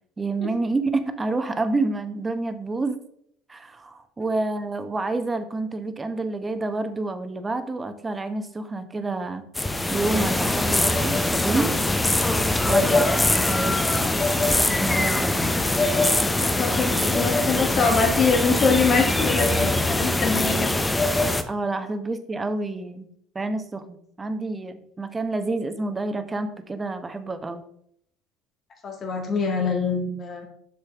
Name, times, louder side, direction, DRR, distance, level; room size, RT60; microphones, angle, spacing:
voice 1, 0.2-3.0 3.5-9.4 9.9-11.8 12.7-15.6 21.5-23.1 23.3-27.6, right 3 dB, 20° right, 9 dB, 0.9 m, -28 dB
sound 1, 9.5-21.4, left 2 dB, 15° left, 0.7 m, -22 dB
voice 2, 16.4-20.7 28.8-30.5, left 4 dB, 40° left, 2 dB, 1.9 m, -24 dB
6.8 x 6.5 x 3.5 m, 0.69 s
figure-of-eight pair, 65°, 0 cm